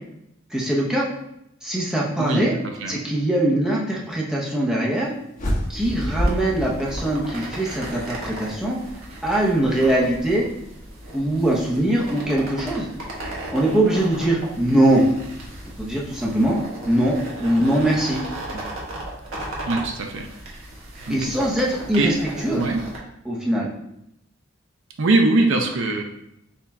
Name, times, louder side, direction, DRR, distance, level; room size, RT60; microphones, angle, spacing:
voice 1, 0.5-1.1 1.6-2.5 2.9-5.1 5.7-8.8 9.2-10.5 11.1-12.9 13.5-15.0 15.8-18.2 21.1-22.1 22.4-22.6 23.3-23.7, right 1 dB, 5° right, -4 dB, 0.7 m, -22 dB
voice 2, 2.2-3.0 18.5-18.6 19.7-20.3 21.1-21.3 22.0-22.1 22.5-22.8 25.0-26.0, right 2 dB, 65° right, 3 dB, 0.5 m, -22 dB
sound 1, 5.4-7.7, equal, 40° left, 1.2 m, -27 dB
sound 2, 5.7-23.0, right 1 dB, 85° right, 1.1 m, -36 dB
4.4 x 2.3 x 4.1 m, 0.80 s
head